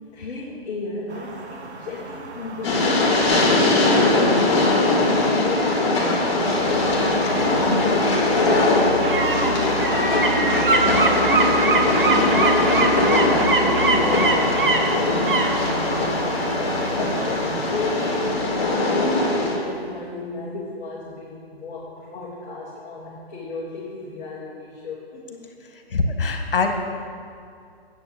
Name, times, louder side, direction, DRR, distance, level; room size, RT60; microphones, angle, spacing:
voice 1, 0.1-11.3 11.8-25.5, left 3 dB, 10° left, -10 dB, 1.4 m, -34 dB
sound 1, 1.1-18.3, right 4 dB, 90° right, 1.4 m, -37 dB
Train, 2.6-19.6, left 2 dB, 30° left, 2.3 m, -21 dB
sound 2, 6.2-19.0 19.3-19.4, right 3 dB, 50° right, 1.2 m, -25 dB
voice 2, 25.9-26.7, left 4 dB, 55° left, 4 dB, 1.6 m, -22 dB
9.1 x 8.2 x 7.8 m, 2.5 s
hypercardioid pair, 170°, 32 cm